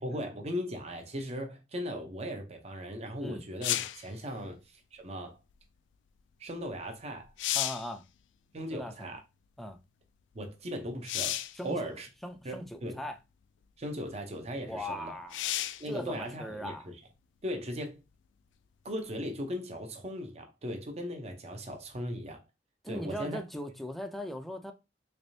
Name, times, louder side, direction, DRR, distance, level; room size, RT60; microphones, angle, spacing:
voice 1, 0.0-5.4 6.4-7.3 8.5-9.2 10.3-12.1 12.4-13.0 13.8-15.2 15.8-17.0 17.4-18.0 18.8-22.4 22.9-23.4, equal, 35° right, 0.6 m, -38 dB
sound 1, 3.6-4.1 6.7-6.8 7.2-7.9 11.0-11.6 12.6-12.7 15.3-15.9 19.5-19.6, left 13 dB, 80° left, 0.3 m, -32 dB
voice 2, 7.5-8.0 8.7-9.1 9.6-9.8 11.6-11.9 12.2-13.2 14.6-15.4 15.9-16.9 22.8-24.7, left 1 dB, ahead, 0.4 m, -39 dB
3.4 x 3.4 x 2.6 m
head